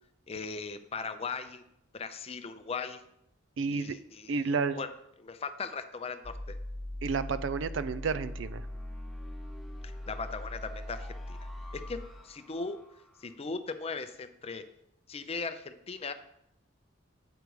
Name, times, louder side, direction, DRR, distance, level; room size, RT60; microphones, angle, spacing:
voice 1, 0.3-1.6 1.9-3.0 3.7-4.9 5.2-6.6 9.8-11.4 11.7-12.8 13.2-14.6 15.1-16.1, left 4 dB, 30° left, 10 dB, 0.5 m, -38 dB
voice 2, 3.6-4.0 4.3-4.8 7.0-8.7, right 5 dB, 70° right, 13 dB, 0.4 m, -31 dB
sound 1, 6.2-13.2, left 1 dB, ahead, 0.8 m, -41 dB
8.1 x 5.1 x 4.6 m, 0.79 s
head